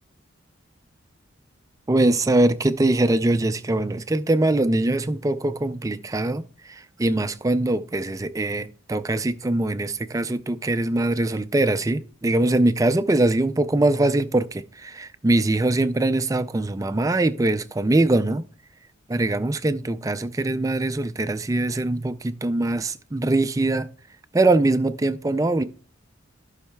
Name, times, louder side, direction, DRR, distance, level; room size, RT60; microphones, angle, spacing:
voice 1, 1.9-6.4 6.7-18.4 19.1-23.9 24.3-25.6, right 2 dB, 15° right, 0.3 m, -22 dB
15.0 x 5.5 x 2.2 m
head